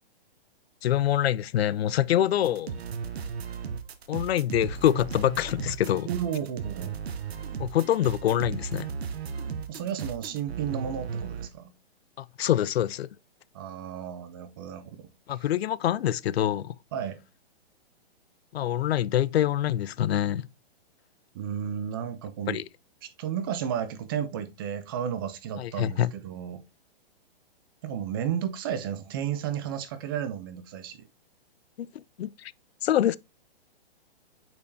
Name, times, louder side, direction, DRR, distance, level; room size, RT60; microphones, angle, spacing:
voice 1, 0.8-2.7 4.1-6.1 7.6-8.9 12.2-13.1 15.3-16.8 18.5-20.5 22.5-22.6 25.6-26.1 32.2-32.5 32.8-33.2, left 11 dB, 80° left, 0.5 m, -25 dB
sound 1, 2.4-11.5, right 6 dB, 85° right, 1.0 m, -36 dB
voice 2, 6.0-7.0 9.7-11.6 13.5-15.1 16.9-17.2 21.3-22.6 23.0-26.6 27.8-31.1, right 9 dB, 25° right, 0.5 m, -33 dB
8.5 x 4.4 x 2.7 m
hypercardioid pair, 155°, 30 cm